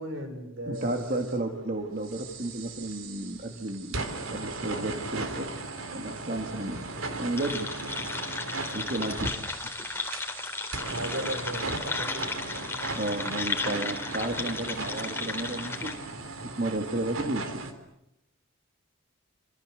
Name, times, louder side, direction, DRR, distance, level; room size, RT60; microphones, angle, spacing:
voice 1, 0.0-1.0 10.9-12.3, right 1 dB, 65° right, 7 dB, 6.2 m, -36 dB
voice 2, 0.7-5.6 5.9-6.8 7.1-7.7 8.7-9.5 13.0-15.9 16.4-17.7, right 2 dB, 45° right, 4 dB, 2.3 m, -33 dB
sound 1, 0.7-1.4 2.0-17.7, right 3 dB, 90° right, 3.7 m, -37 dB
sound 2, 7.4-15.9, left 3 dB, 10° left, 3.5 m, -35 dB
28.0 x 27.0 x 7.8 m, 0.85 s
head